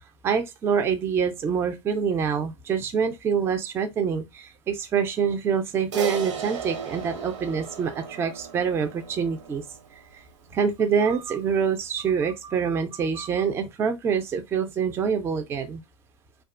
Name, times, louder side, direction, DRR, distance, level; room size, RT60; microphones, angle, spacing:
voice 1, 0.2-9.6 10.5-15.8, right 6 dB, 15° right, 0.3 m, -26 dB
Crash cymbal, 5.9-10.5, right 7 dB, 70° right, 0.7 m, -35 dB
2.5 x 2.1 x 2.4 m
hypercardioid pair, 125°, 16 cm